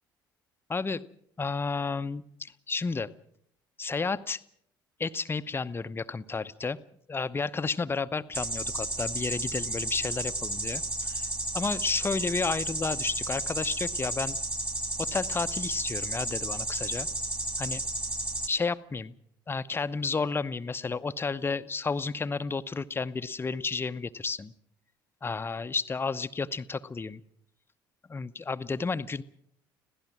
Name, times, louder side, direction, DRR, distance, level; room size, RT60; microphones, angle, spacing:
voice 1, 0.7-1.0 1.4-3.1 3.8-4.4 5.0-6.8 7.1-11.3 11.5-14.4 15.0-17.1 17.6-17.8 18.5-19.1 19.5-24.5 25.2-27.2 28.1-29.2, left 4 dB, 20° left, 13 dB, 0.9 m, -32 dB
sound 1, 8.3-18.5, right 1 dB, 15° right, 2.5 m, -33 dB
26.0 x 17.0 x 6.1 m, 0.67 s
figure-of-eight pair, 55°, 11 cm